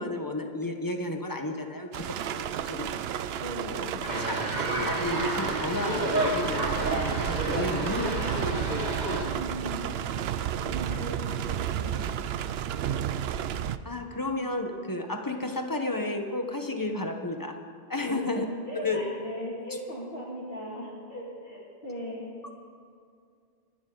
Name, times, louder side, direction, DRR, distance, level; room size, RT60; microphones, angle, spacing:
voice 1, 0.0-2.9 3.7-3.8 4.3-4.4 4.8-8.6 13.8-17.6 17.9-18.4 18.7-19.0, left 2 dB, 20° left, 4 dB, 1.2 m, -32 dB
sound 1, 1.9-13.8, right 9 dB, 80° right, 0.8 m, -32 dB
voice 2, 3.4-4.1 9.2-9.9 10.6-12.3 18.1-22.3, equal, 65° left, -4 dB, 2.7 m, -38 dB
sound 2, 4.1-9.2, right 1 dB, 45° right, 1.7 m, -30 dB
26.5 x 11.0 x 4.0 m, 2.2 s
omnidirectional pair, 1.0 m